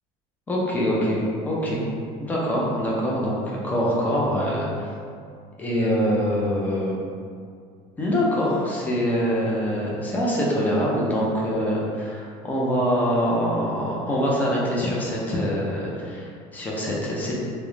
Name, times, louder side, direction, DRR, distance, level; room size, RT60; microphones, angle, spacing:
voice 1, 0.5-1.9 2.2-4.9 5.6-7.0 8.0-17.3, equal, 10° left, -5 dB, 0.4 m, -24 dB
2.4 x 2.0 x 3.0 m, 2.2 s
cardioid pair, 155°, 16 cm